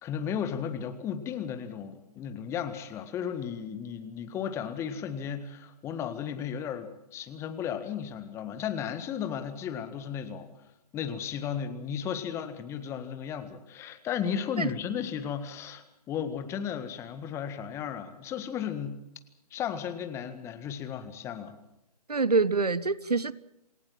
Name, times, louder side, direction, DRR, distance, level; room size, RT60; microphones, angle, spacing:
voice 1, 0.0-10.5 10.9-19.0 19.5-21.5, left 8 dB, 15° left, 10 dB, 1.7 m, -34 dB
voice 2, 22.1-23.3, right 4 dB, 75° right, 18 dB, 1.3 m, -25 dB
28.0 x 17.0 x 7.6 m, 0.84 s
figure-of-eight pair, 135°, 20 cm